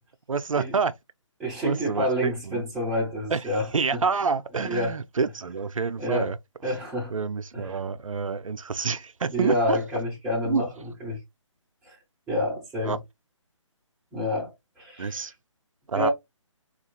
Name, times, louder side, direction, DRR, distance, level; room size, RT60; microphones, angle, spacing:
voice 1, 0.3-0.9 1.6-2.6 3.3-3.4 3.7-6.4 7.1-9.8 10.4-10.6 12.8-13.0 15.0-15.3 15.9-16.1, right 5 dB, 85° right, 0.4 m, -27 dB
voice 2, 1.4-4.0 4.6-5.0 6.0-6.3 6.6-7.1 7.5-7.8 9.3-11.2 11.8-12.0 12.3-13.0 14.1-15.3 15.9-16.1, left 1 dB, ahead, 0.3 m, -29 dB
4.2 x 2.3 x 2.7 m
figure-of-eight pair, 145°, 17 cm